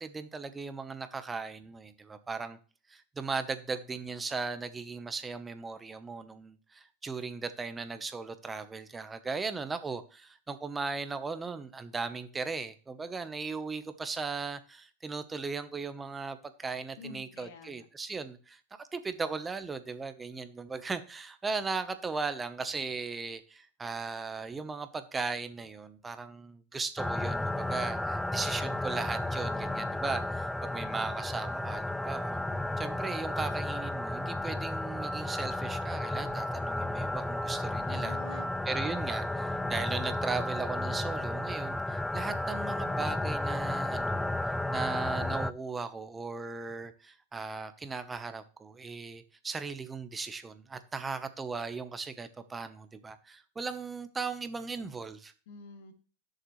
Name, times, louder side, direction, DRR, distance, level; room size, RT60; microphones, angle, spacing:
voice 1, 0.0-2.6 2.9-32.4 32.8-38.2 38.7-55.3, right 4 dB, 15° right, 1.0 m, -37 dB
voice 2, 17.0-17.9 37.8-38.5 38.8-39.4 55.5-55.9, left 4 dB, 75° left, 2.2 m, -48 dB
sound 1, 27.0-45.5, left 1 dB, 5° left, 0.4 m, -33 dB
15.5 x 6.7 x 3.2 m
hypercardioid pair, 110°, 0 cm